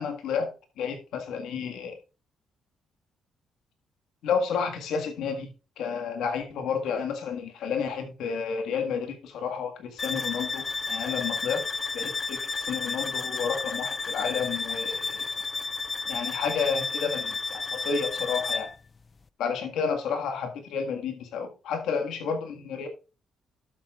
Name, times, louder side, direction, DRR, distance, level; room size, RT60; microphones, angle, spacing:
voice 1, 0.0-2.0 4.2-5.5 5.8-11.7 11.9-15.3 16.1-18.7 19.4-22.9, left 6 dB, 80° left, 4 dB, 1.7 m, -31 dB
sound 1, 10.0-18.8, left 4 dB, 30° left, 0.4 m, -32 dB
12.0 x 7.7 x 2.4 m, 0.31 s
cardioid pair, 90°, 0 cm